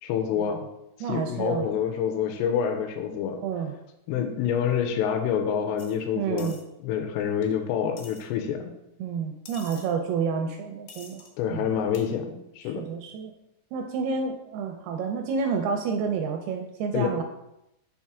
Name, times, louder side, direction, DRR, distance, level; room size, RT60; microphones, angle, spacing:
voice 1, 0.0-0.6 1.0-3.4 4.1-6.6 6.8-8.7 11.4-12.9 16.9-17.2, left 8 dB, 85° left, 5 dB, 2.7 m, -27 dB
voice 2, 1.0-1.7 3.4-3.7 6.2-6.6 9.0-11.2 11.5-11.7 12.8-13.3 13.7-17.2, right 5 dB, 85° right, 4 dB, 2.3 m, -29 dB
sound 1, 5.8-6.0 6.4-6.6 7.4-7.5 8.0-8.2 9.5-9.9 10.9-11.3 11.9-12.0, left 5 dB, 70° left, 2.5 m, -46 dB
6.4 x 4.3 x 3.6 m, 0.85 s
omnidirectional pair, 4.9 m